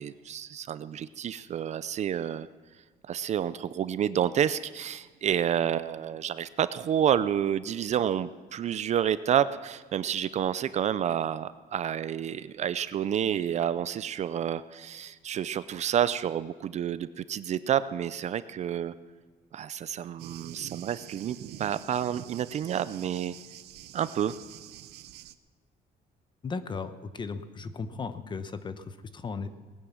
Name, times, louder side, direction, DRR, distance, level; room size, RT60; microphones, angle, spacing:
voice 1, 0.0-2.5 3.1-18.9 19.5-23.3 23.9-24.3, right 9 dB, 45° right, 15 dB, 0.5 m, -29 dB
Thunder, 20.2-25.4, right 13 dB, 85° right, 0.7 m, -46 dB
voice 2, 26.4-29.5, left 4 dB, 30° left, 12 dB, 0.9 m, -36 dB
19.0 x 9.9 x 7.2 m, 1.5 s
cardioid pair, 145°, 17 cm